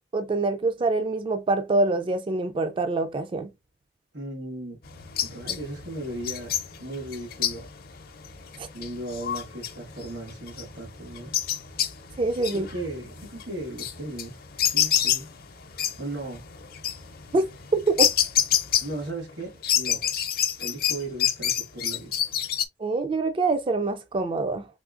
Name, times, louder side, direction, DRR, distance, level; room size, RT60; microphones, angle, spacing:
voice 1, 0.1-3.5 8.6-8.7 12.2-12.7 17.3-17.4 17.7-18.1 22.8-24.7, right 3 dB, 30° right, 0.3 m, -25 dB
voice 2, 4.1-4.8 5.2-6.5 6.8-7.7 8.7-11.3 12.5-15.3 15.7-16.4 18.8-20.0 20.6-22.1, right 1 dB, 85° right, 1.8 m, -36 dB
sound 1, 4.8-19.3 19.6-22.6, left 10 dB, 60° left, 0.6 m, -28 dB
3.6 x 3.4 x 2.4 m
head